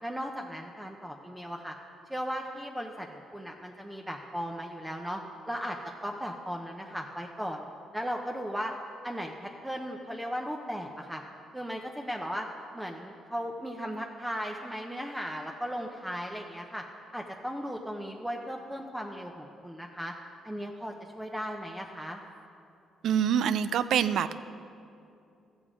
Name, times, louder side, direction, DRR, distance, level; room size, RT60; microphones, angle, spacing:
voice 1, 0.0-1.7 2.1-7.6 7.9-8.8 9.0-11.2 11.5-12.5 12.7-16.8 17.1-20.1 20.4-22.2, equal, 5° right, 1 dB, 0.7 m, -36 dB
voice 2, 23.0-24.4, right 8 dB, 75° right, 13 dB, 0.4 m, -26 dB
13.5 x 7.1 x 4.9 m, 2.6 s
cardioid pair, 90°, 0 cm